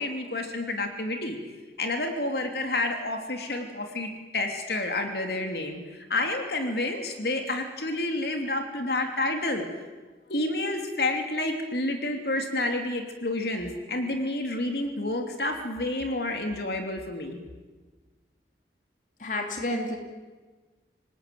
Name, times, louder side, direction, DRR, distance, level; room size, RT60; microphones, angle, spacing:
voice 1, 0.0-1.4 1.8-9.7 10.3-17.4, left 2 dB, 65° left, 4 dB, 3.0 m, -29 dB
voice 2, 19.2-20.0, left 1 dB, 45° left, 3 dB, 2.9 m, -30 dB
26.0 x 19.5 x 9.4 m, 1.3 s
head